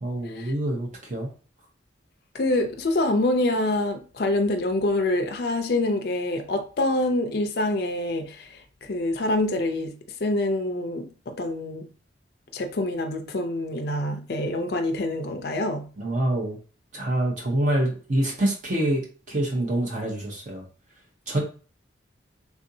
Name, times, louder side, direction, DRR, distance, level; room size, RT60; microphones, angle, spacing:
voice 1, 0.0-1.3 16.0-16.6 16.9-19.0 19.3-20.6 21.3-21.4, right 1 dB, 40° right, 0.7 m, -26 dB
voice 2, 2.3-11.9 12.5-15.9, left 2 dB, 55° left, 0.5 m, -26 dB
3.6 x 2.6 x 2.7 m
head